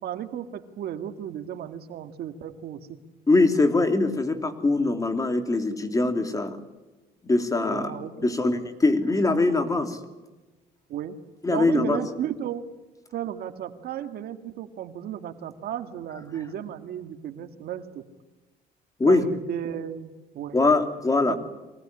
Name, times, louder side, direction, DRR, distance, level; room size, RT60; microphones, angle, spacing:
voice 1, 0.0-3.0 7.7-8.4 10.9-11.2 11.5-12.6 13.1-18.0 19.1-20.6 21.2-21.3, right 10 dB, 65° right, 8 dB, 2.0 m, -34 dB
voice 2, 3.3-6.6 7.2-7.9 8.2-10.0 11.4-12.0 19.0-19.2 20.5-21.4, left 2 dB, 20° left, 7 dB, 3.0 m, -22 dB
24.5 x 18.5 x 9.8 m, 1.2 s
cardioid pair, 110°, 17 cm